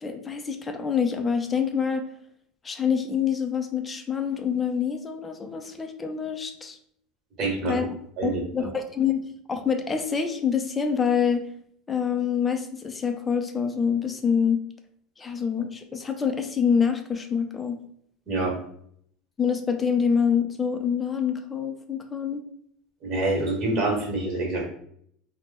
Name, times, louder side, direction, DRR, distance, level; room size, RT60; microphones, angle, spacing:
voice 1, 0.0-2.0 2.6-6.8 7.7-7.9 8.2-9.2 9.5-11.4 11.9-14.6 15.2-17.8 19.4-22.4, left 7 dB, 20° left, 5 dB, 0.4 m, -26 dB
voice 2, 7.4-7.8 8.2-8.7 18.3-18.5 23.0-24.6, right 2 dB, 45° right, 0 dB, 1.2 m, -26 dB
2.9 x 2.1 x 3.4 m, 0.67 s
supercardioid pair, 120°, 0 cm